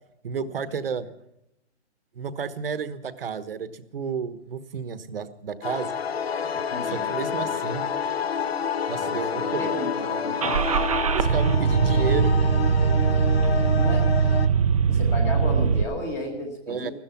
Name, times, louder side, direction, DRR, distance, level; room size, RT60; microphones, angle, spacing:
voice 1, 0.2-1.1 2.1-5.9 6.9-7.8 8.9-9.7 11.1-12.3 16.7-16.9, right 6 dB, 55° right, 13 dB, 1.3 m, -31 dB
sound 1, 5.6-14.5, left 6 dB, 60° left, 1.4 m, -29 dB
voice 2, 6.5-7.6 8.9-11.0 13.8-14.1 14.9-16.9, left 2 dB, 10° left, 4 dB, 1.2 m, -34 dB
Car / Engine starting, 10.4-15.8, right 6 dB, 30° right, 0.7 m, -21 dB
15.5 x 13.5 x 5.8 m, 0.80 s
hypercardioid pair, 170°, 34 cm